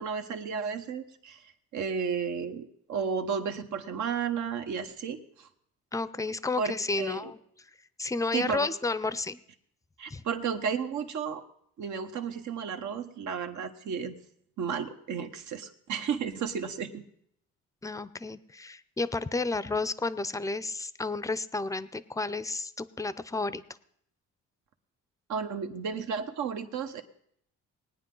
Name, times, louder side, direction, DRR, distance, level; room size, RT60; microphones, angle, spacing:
voice 1, 0.0-1.4 1.7-5.5 6.6-7.3 8.3-8.7 10.0-11.4 11.8-14.2 14.6-17.0 25.3-27.0, right 6 dB, 75° right, 6 dB, 1.2 m, -33 dB
voice 2, 5.9-7.4 8.0-9.4 10.1-10.2 17.8-23.6, left 3 dB, 10° left, 16 dB, 0.5 m, -31 dB
20.0 x 9.4 x 3.8 m, 0.69 s
cardioid pair, 90°, 30 cm